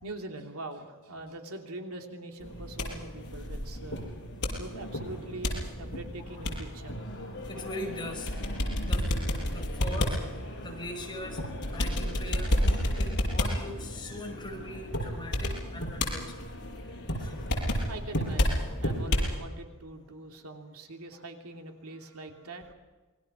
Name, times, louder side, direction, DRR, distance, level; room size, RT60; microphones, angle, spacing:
voice 1, 0.0-4.0 4.6-7.0 17.9-22.7, right 2 dB, 75° right, 4 dB, 2.9 m, -43 dB
sound 1, 2.4-19.4, left 1 dB, 55° left, 6.5 m, -31 dB
voice 2, 7.5-8.3 8.8-9.2 9.4-10.2 10.6-11.4 11.7-16.3 17.2-17.5, left 1 dB, 20° left, 1 dB, 5.6 m, -41 dB
27.0 x 22.0 x 6.1 m, 1.3 s
head